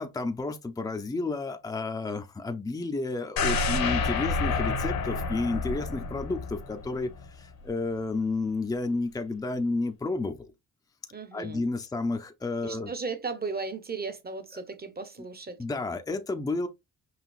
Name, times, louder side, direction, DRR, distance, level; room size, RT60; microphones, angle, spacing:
voice 1, 0.0-10.5 11.3-12.9 15.6-16.7, left 3 dB, 10° left, 0.6 m, -31 dB
sound 1, 3.4-7.3 7.7-7.8, left 4 dB, 65° left, 1.1 m, -29 dB
voice 2, 11.1-11.6 12.6-15.6, right 4 dB, 25° right, 0.9 m, -36 dB
5.8 x 2.3 x 2.4 m
cardioid pair, 80°, 36 cm